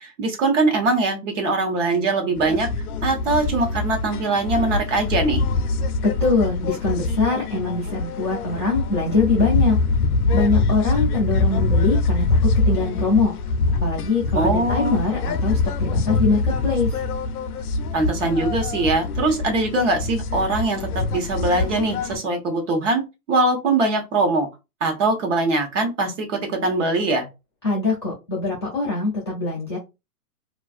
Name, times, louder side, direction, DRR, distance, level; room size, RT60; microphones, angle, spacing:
voice 1, 0.0-2.7 3.0-5.4 14.3-15.0 17.9-23.0 23.3-24.5 24.8-27.3, right 2 dB, 50° right, 3 dB, 1.1 m, -22 dB
sound 1, 2.4-22.2, left 3 dB, 70° left, 0.6 m, -24 dB
voice 2, 6.0-9.8 10.3-12.2 12.7-13.3 13.8-16.9 27.6-29.8, left 3 dB, 20° left, -10 dB, 0.4 m, -23 dB
2.5 x 2.3 x 2.3 m, 0.25 s
hypercardioid pair, 150°, 46 cm